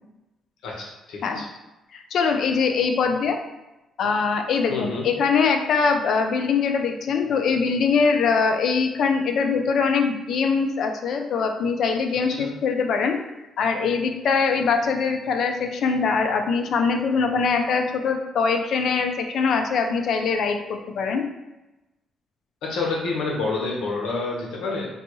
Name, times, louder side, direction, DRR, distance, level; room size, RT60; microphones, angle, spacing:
voice 1, 0.6-1.4 4.7-5.1 12.3-12.5 17.2-17.3 22.6-24.9, left 3 dB, 85° left, -2 dB, 0.9 m, -28 dB
voice 2, 1.9-3.4 4.0-13.2 13.6-21.2, left 5 dB, 65° left, 5 dB, 0.4 m, -22 dB
3.9 x 2.3 x 3.0 m, 0.99 s
cardioid pair, 90°, 0 cm